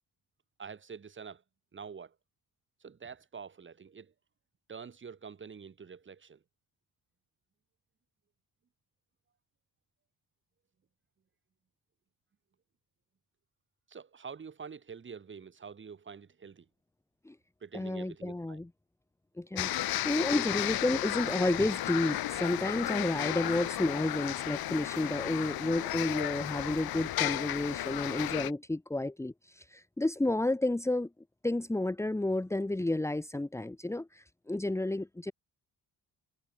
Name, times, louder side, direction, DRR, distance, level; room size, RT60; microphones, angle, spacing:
voice 1, 0.6-1.4 1.7-2.1 2.8-4.1 4.7-6.4 13.9-16.7 17.6-18.6, right 6 dB, 30° right, 6.2 m, -46 dB
voice 2, 17.7-18.7 19.4-31.1 31.4-35.3, left 2 dB, 5° left, 2.2 m, -31 dB
sound 1, 19.6-28.5, left 14 dB, 75° left, 1.3 m, -34 dB
cardioid pair, 165°, 37 cm